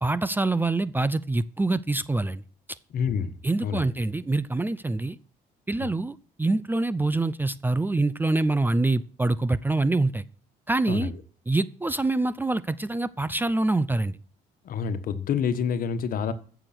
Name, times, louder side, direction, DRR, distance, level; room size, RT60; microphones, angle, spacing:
voice 1, 0.0-2.4 3.4-5.2 5.7-10.2 10.7-11.1 11.5-14.2, right 2 dB, 10° right, 0.6 m, -25 dB
voice 2, 2.9-3.3 3.6-3.9 10.9-11.1 14.6-16.3, left 7 dB, 55° left, 1.5 m, -27 dB
15.0 x 7.1 x 6.0 m
cardioid pair, 110°, 17 cm